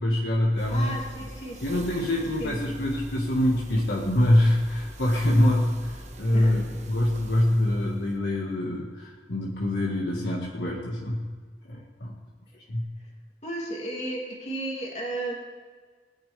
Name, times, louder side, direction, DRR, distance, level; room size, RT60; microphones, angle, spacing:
voice 1, 0.0-0.9 1.6-6.6 6.9-11.3 11.7-12.1 12.7-12.8, left 1 dB, 65° left, -3 dB, 1.6 m, -24 dB
sound 1, 0.6-8.2, right 1 dB, 40° right, 1.3 m, -43 dB
voice 2, 0.7-1.8 2.4-2.6 6.3-6.8 13.4-15.3, right 1 dB, 40° left, -2 dB, 2.8 m, -34 dB
20.0 x 10.0 x 3.4 m, 1.5 s
head